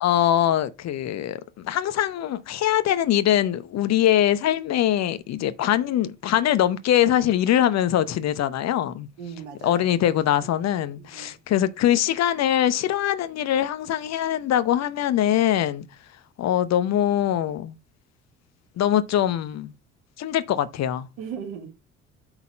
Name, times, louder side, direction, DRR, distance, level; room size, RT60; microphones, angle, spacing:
voice 1, 0.0-9.1 9.6-15.9 16.4-17.8 18.8-19.7 20.2-21.1, left 11 dB, 45° left, 0.9 m, -22 dB
voice 2, 9.2-10.0 10.6-10.7 11.0-11.3 21.2-21.7, right 7 dB, 65° right, 2.0 m, -37 dB
8.8 x 4.1 x 5.3 m
figure-of-eight pair, 55°, 38 cm